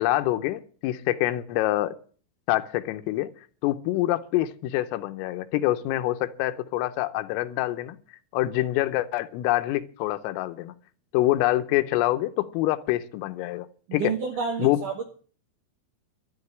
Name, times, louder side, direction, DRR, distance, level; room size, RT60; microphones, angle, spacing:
voice 1, 0.0-1.9 2.5-3.3 3.6-8.0 8.3-10.7 11.1-13.7 13.9-14.1 14.6-14.8, left 15 dB, 90° left, 3.4 m, -26 dB
voice 2, 14.0-15.0, right 5 dB, 75° right, 1.9 m, -29 dB
13.0 x 7.1 x 9.6 m
omnidirectional pair, 5.8 m